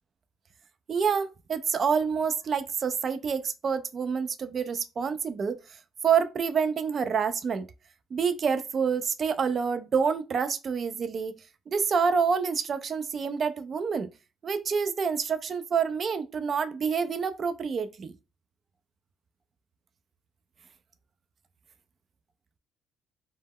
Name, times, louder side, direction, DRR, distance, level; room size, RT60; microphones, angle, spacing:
voice 1, 0.9-5.6 6.0-7.7 8.1-11.4 11.7-14.1 14.4-18.1, right 6 dB, 45° right, 0.3 m, -27 dB
2.1 x 2.0 x 3.5 m
cardioid pair, 85°, 0 cm